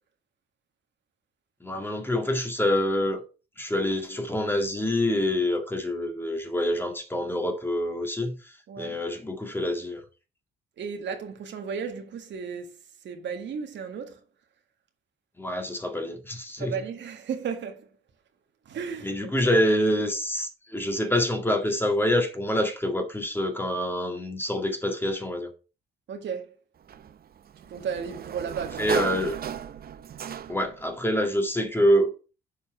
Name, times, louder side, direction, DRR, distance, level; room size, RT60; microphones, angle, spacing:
voice 1, 1.6-3.2 3.6-10.0 15.4-16.7 19.0-25.5 28.8-29.4 30.5-32.1, equal, 10° left, 1.9 m, -26 dB
voice 2, 10.8-12.7 13.0-14.2 16.6-17.9 18.7-19.3 26.1-26.5 27.7-28.9, right 6 dB, 65° right, 1.8 m, -34 dB
Sliding door, 26.9-30.8, right 9 dB, 50° right, 0.7 m, -35 dB
7.2 x 4.5 x 5.8 m
cardioid pair, 90°, 20 cm